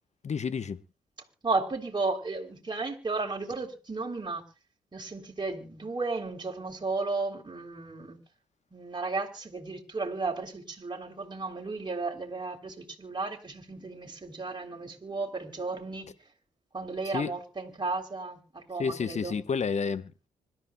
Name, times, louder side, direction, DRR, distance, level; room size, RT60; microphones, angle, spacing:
voice 1, 0.2-0.8 17.0-17.3 18.8-20.3, left 5 dB, 50° left, 1.2 m, -30 dB
voice 2, 1.4-4.4 4.9-8.2 8.7-16.1 16.7-19.4, right 3 dB, 30° right, 3.5 m, -34 dB
25.5 x 13.5 x 2.3 m
hypercardioid pair, 45°, 15 cm